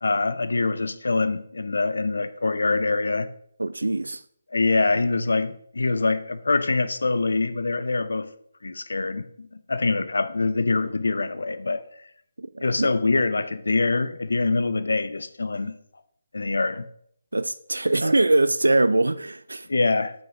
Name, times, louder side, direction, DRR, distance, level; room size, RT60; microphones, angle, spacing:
voice 1, 0.0-3.3 4.5-8.3 8.6-11.8 12.6-15.7 16.3-16.8 19.7-20.1, left 3 dB, 75° left, 0.7 m, -24 dB
voice 2, 3.6-4.2 12.4-12.9 17.3-19.7, right 2 dB, 85° right, 0.3 m, -23 dB
6.1 x 5.4 x 5.0 m
figure-of-eight pair, 150°, 0 cm